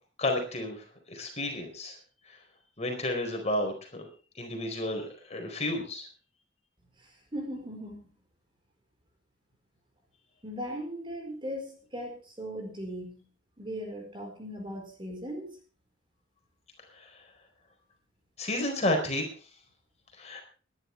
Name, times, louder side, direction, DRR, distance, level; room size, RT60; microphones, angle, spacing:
voice 1, 0.2-0.8 1.1-1.9 2.8-4.0 4.4-5.0 5.3-6.0 18.4-19.2 20.2-20.4, left 1 dB, 35° left, 3 dB, 4.5 m, -31 dB
voice 2, 7.3-8.1 10.4-13.2 13.6-15.5, equal, 25° right, 3 dB, 4.6 m, -38 dB
21.0 x 11.5 x 3.4 m, 0.37 s
head